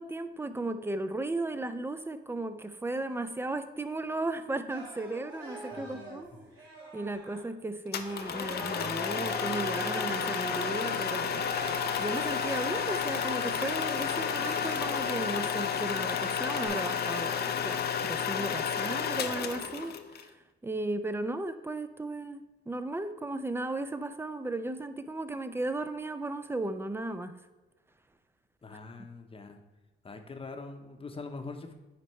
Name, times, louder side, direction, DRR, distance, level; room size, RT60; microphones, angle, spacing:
voice 1, 0.0-6.2 6.9-11.5 12.0-20.3 20.6-27.3, right 2 dB, 10° right, 11 dB, 0.5 m, -35 dB
sound 1, 4.7-7.4 8.0-15.8 16.2-16.7, right 2 dB, 85° right, 2.4 m, -43 dB
voice 2, 5.7-6.2 28.6-29.6 30.0-31.7, left 3 dB, 30° left, 5 dB, 0.8 m, -43 dB
sound 2, 7.9-20.2, left 7 dB, 55° left, 0.6 m, -31 dB
sound 3, 11.5-19.9, right 4 dB, 55° right, 1.1 m, -50 dB
9.8 x 4.5 x 3.1 m, 1.1 s
cardioid pair, 90°, 20 cm